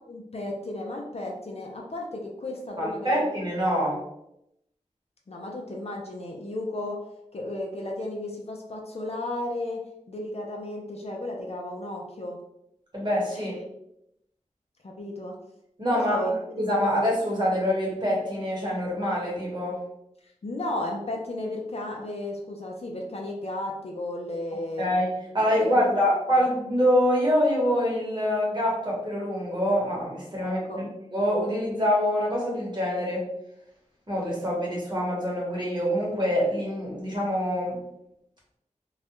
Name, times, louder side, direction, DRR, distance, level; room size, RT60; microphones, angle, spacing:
voice 1, 0.1-3.2 5.3-7.0 7.3-12.4 14.8-15.4 15.9-17.0 20.4-24.9 25.4-26.4 30.4-30.8, left 1 dB, 50° left, 0 dB, 0.5 m, -34 dB
voice 2, 2.8-4.0 12.9-13.5 15.8-16.3 16.6-19.8 24.8-33.3 34.1-37.8, equal, 35° right, -4 dB, 1.0 m, -25 dB
2.3 x 2.1 x 2.9 m, 0.81 s
wide cardioid pair, 70°, 13 cm